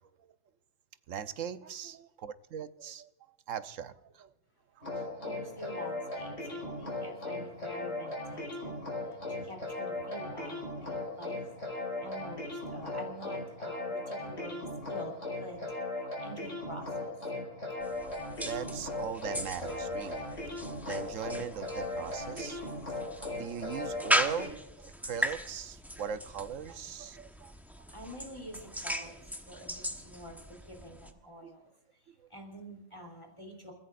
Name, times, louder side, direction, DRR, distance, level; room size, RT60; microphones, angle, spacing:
voice 1, 1.1-3.1 3.5-4.3 4.8-5.2 11.9-12.0 18.4-20.3 20.6-22.7 23.3-27.5 31.4-31.5 32.1-32.2, right 8 dB, 85° right, 1.2 m, -40 dB
sound 1, 4.8-24.5, left 2 dB, 70° left, 5.3 m, -38 dB
voice 2, 5.2-11.4 11.7-15.6 15.9-17.1 27.9-33.7, equal, 25° left, 2.9 m, -47 dB
sound 2, 17.8-31.1, equal, ahead, 0.9 m, -38 dB
29.0 x 15.5 x 2.5 m
omnidirectional pair, 1.3 m